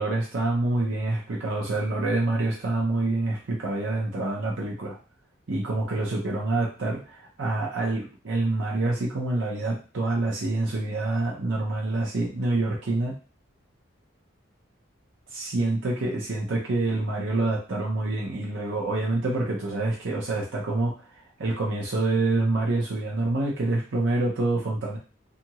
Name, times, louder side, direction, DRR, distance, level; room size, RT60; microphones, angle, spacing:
voice 1, 0.0-5.0 5.5-13.1 15.3-20.9 21.4-25.0, right 2 dB, 70° right, -2 dB, 0.6 m, -26 dB
2.7 x 2.4 x 2.9 m, 0.35 s
head